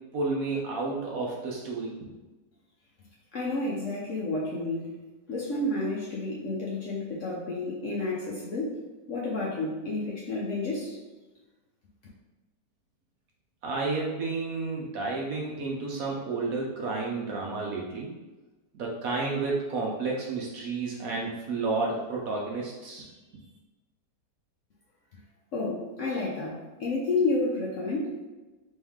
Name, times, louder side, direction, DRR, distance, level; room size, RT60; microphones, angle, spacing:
voice 1, 0.1-2.1 13.6-18.1 18.7-23.1, right 3 dB, 65° right, -2 dB, 1.0 m, -31 dB
voice 2, 3.3-4.9 5.3-8.8 9.1-11.0 25.5-28.3, left 2 dB, 60° left, -5 dB, 0.8 m, -30 dB
3.6 x 3.1 x 3.5 m, 1.2 s
omnidirectional pair, 1.9 m